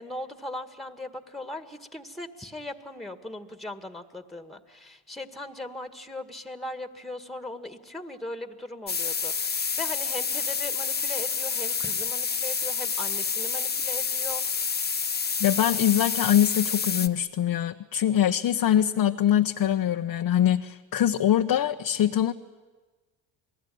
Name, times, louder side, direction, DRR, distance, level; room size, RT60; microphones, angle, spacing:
voice 1, 0.0-14.7, left 2 dB, ahead, 8 dB, 1.9 m, -39 dB
sound 1, 8.9-17.1, left 5 dB, 20° left, 0.9 m, -28 dB
voice 2, 15.4-22.3, left 11 dB, 45° left, 4 dB, 1.0 m, -23 dB
29.0 x 19.5 x 9.4 m, 1.3 s
supercardioid pair, 75°, 49 cm